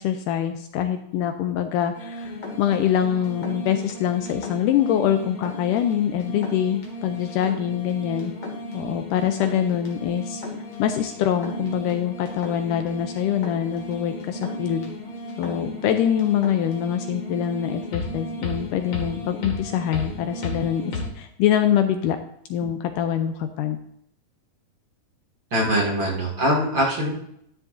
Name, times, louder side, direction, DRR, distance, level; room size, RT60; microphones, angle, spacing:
voice 1, 0.0-8.3 8.7-10.4 10.8-14.9 15.4-22.2 22.5-23.8, left 10 dB, 80° left, 7 dB, 2.0 m, -24 dB
sound 1, 1.9-21.1, left 1 dB, 50° left, 2.7 m, -34 dB
voice 2, 25.5-27.1, equal, 35° right, -3 dB, 2.5 m, -22 dB
12.5 x 9.7 x 2.6 m, 0.71 s
omnidirectional pair, 4.1 m